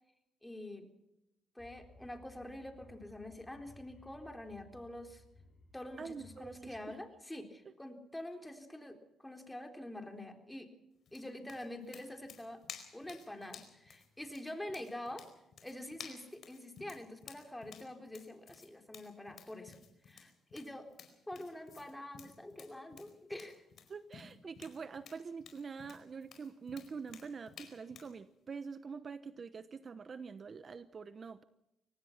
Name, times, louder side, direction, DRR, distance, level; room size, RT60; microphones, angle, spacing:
voice 1, 0.4-0.9 1.6-5.2 5.7-10.7 11.1-12.6 12.9-15.3 15.6-19.8 20.0-20.9 21.3-23.6, left 1 dB, 10° left, 5 dB, 4.0 m, -46 dB
sound 1, 1.6-6.9, left 2 dB, 25° left, 6.9 m, -60 dB
voice 2, 6.0-7.0 23.9-31.4, right 5 dB, 40° right, 13 dB, 1.0 m, -45 dB
sound 2, 11.1-28.1, left 7 dB, 60° left, 4.7 m, -54 dB
24.5 x 18.5 x 5.8 m, 0.85 s
cardioid pair, 90°, 0 cm